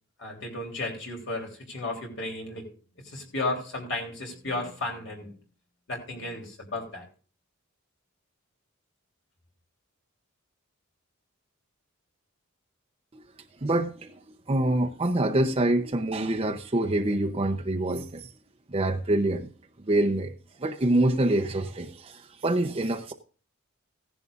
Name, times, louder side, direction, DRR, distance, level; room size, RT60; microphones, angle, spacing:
voice 1, 0.2-2.7 3.0-5.3 5.9-7.1, left 2 dB, 60° left, 3.4 m, -34 dB
voice 2, 13.6-14.1 14.5-18.3 18.7-19.5 19.9-20.3 20.6-23.1, right 1 dB, 25° right, 0.7 m, -25 dB
16.0 x 10.5 x 2.5 m
head